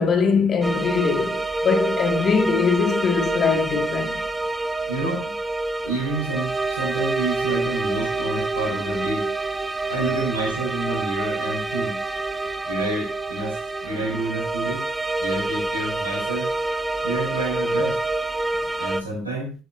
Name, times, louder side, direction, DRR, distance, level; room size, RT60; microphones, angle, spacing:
voice 1, 0.0-4.2, left 5 dB, 40° left, 1.9 m, -22 dB
sound 1, 0.6-19.0, right 2 dB, 15° right, 0.9 m, -27 dB
voice 2, 4.9-5.3 5.9-9.3 9.9-12.0 12.6-14.8 15.2-16.5 17.0-18.0 18.8-19.5, right 2 dB, 90° right, 4.0 m, -29 dB
12.5 x 7.1 x 2.7 m
hypercardioid pair, 65°, 0 cm